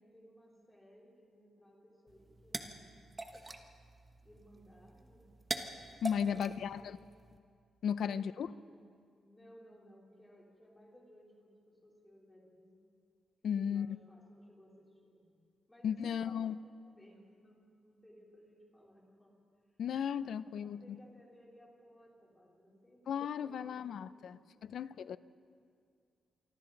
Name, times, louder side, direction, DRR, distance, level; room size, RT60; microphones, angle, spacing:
voice 1, 0.0-2.9 4.2-5.3 6.1-6.9 7.9-8.9 9.2-12.8 13.6-15.3 15.7-16.5 16.8-19.3 19.6-19.8 20.2-20.3 20.6-23.8 24.2-24.3 24.5-24.8 25.1-25.2, equal, 10° left, -3 dB, 3.6 m, -60 dB
sound 1, 2.1-7.4, right 2 dB, 20° right, 1.1 m, -45 dB
voice 2, 6.0-7.0 7.8-8.5 13.4-13.9 15.8-16.6 19.8-20.8 23.1-24.4 24.7-25.2, left 8 dB, 60° left, 15 dB, 0.5 m, -35 dB
27.0 x 24.5 x 4.0 m, 2.3 s
wide cardioid pair, 180°, 0 cm